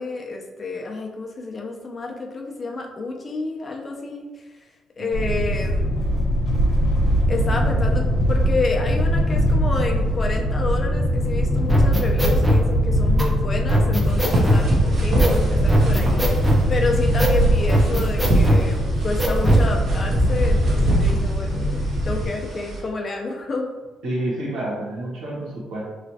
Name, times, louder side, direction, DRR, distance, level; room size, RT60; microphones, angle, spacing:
voice 1, 0.0-4.6 5.0-5.9 7.3-16.3 16.7-23.7, left 3 dB, 40° left, 1 dB, 0.5 m, -29 dB
sound 1, 5.1-22.3, equal, 75° left, 0.9 m, -22 dB
sound 2, 11.7-12.6 13.2-13.3 13.7-14.6 15.2-15.4 15.7-16.6 17.2-17.4 17.7-18.6 19.2-19.7, equal, 10° right, 0.6 m, -20 dB
sound 3, 14.0-22.8, right 1 dB, 55° right, 0.9 m, -24 dB
voice 2, 24.0-25.9, right 1 dB, 90° right, -5 dB, 1.1 m, -29 dB
3.2 x 3.0 x 2.7 m, 1.2 s
cardioid pair, 90°, 0 cm